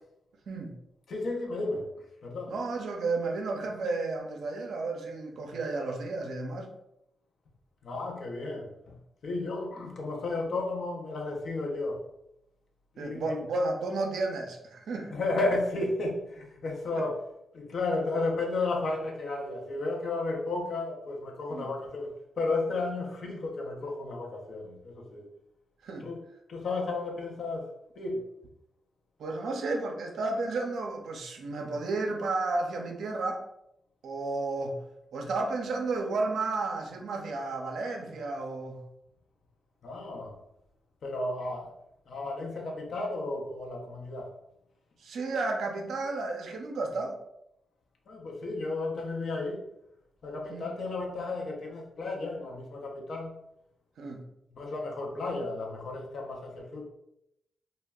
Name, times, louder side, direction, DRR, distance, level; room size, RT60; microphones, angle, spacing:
voice 1, 1.1-1.9 2.2-2.5 7.8-9.0 9.2-12.0 12.9-13.4 15.1-17.2 17.5-25.3 26.0-26.2 26.5-28.2 39.8-40.4 41.0-41.7 42.1-44.3 48.1-49.7 50.2-53.4 54.5-56.9, left 2 dB, 70° left, 0.6 m, -33 dB
voice 2, 2.5-6.7 13.0-15.1 16.9-17.0 21.5-21.7 25.8-26.1 29.2-33.4 34.0-34.8 35.1-38.8 45.0-47.2 50.5-50.7 54.0-54.2, right 3 dB, 75° right, 0.4 m, -32 dB
2.1 x 2.0 x 3.4 m
supercardioid pair, 45°, 0 cm